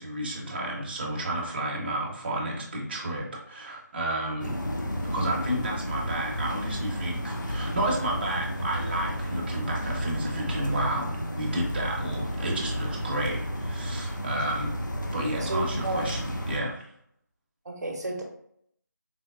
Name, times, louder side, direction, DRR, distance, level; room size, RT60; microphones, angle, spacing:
voice 1, 0.0-4.6 5.0-14.8 15.1-16.9, right 1 dB, 30° right, -2 dB, 0.7 m, -31 dB
sound 1, 4.4-16.6, equal, 90° left, 0.6 m, -32 dB
voice 2, 15.5-16.1 17.6-18.2, right 1 dB, 65° right, 1 dB, 0.7 m, -32 dB
3.9 x 2.0 x 2.3 m, 0.69 s
figure-of-eight pair, 165°, 10 cm